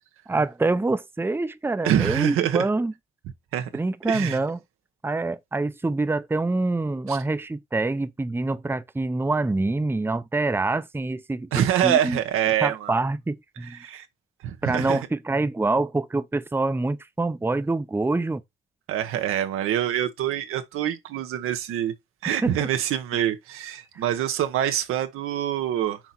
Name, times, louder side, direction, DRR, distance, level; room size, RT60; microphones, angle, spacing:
voice 1, 0.3-2.9 3.7-4.6 5.0-12.2 12.6-13.9 14.6-18.4 22.4-22.7, right 2 dB, 10° right, 0.6 m, -26 dB
voice 2, 1.8-2.6 3.5-3.7 4.1-4.4 7.1-7.2 11.5-12.9 13.8-14.1 14.4-15.0 18.9-21.9 22.2-26.0, right 11 dB, 90° right, 1.0 m, -25 dB
5.9 x 4.0 x 4.3 m
cardioid pair, 75°, 21 cm